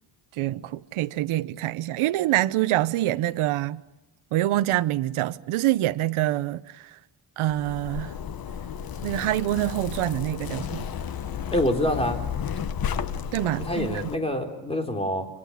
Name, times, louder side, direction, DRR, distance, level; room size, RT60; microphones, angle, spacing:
voice 1, 0.3-3.8 4.3-7.0 7.4-8.1 9.0-10.9 13.3-14.0, right 14 dB, 85° right, 1.0 m, -26 dB
Zipper (clothing), 7.5-14.2, left 8 dB, 45° left, 1.3 m, -33 dB
voice 2, 11.5-12.2 13.6-15.3, left 1 dB, 10° left, 4.0 m, -26 dB
28.5 x 25.5 x 7.3 m
cardioid pair, 160°, 48 cm